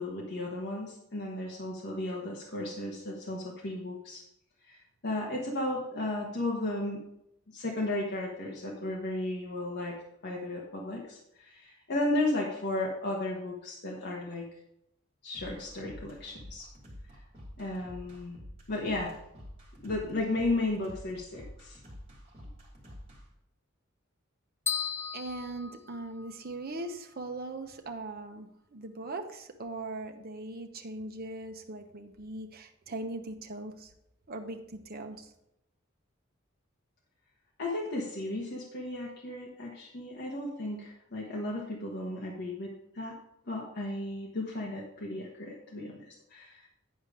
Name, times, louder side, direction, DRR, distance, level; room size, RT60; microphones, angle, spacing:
voice 1, 0.0-4.2 4.7-7.0 7.5-14.5 15.2-16.7 17.6-18.4 18.7-19.1 19.8-21.8 37.6-42.7 42.9-43.2 43.5-45.9 46.3-46.7, left 2 dB, 55° left, -3 dB, 1.3 m, -34 dB
sound 1, 15.3-23.2, equal, 30° right, 3.2 m, -48 dB
sound 2, 24.7-26.6, left 7 dB, 10° left, 0.4 m, -35 dB
voice 2, 25.1-33.9 34.3-35.3, right 2 dB, 50° right, 5 dB, 1.0 m, -40 dB
9.9 x 5.1 x 5.0 m, 0.81 s
head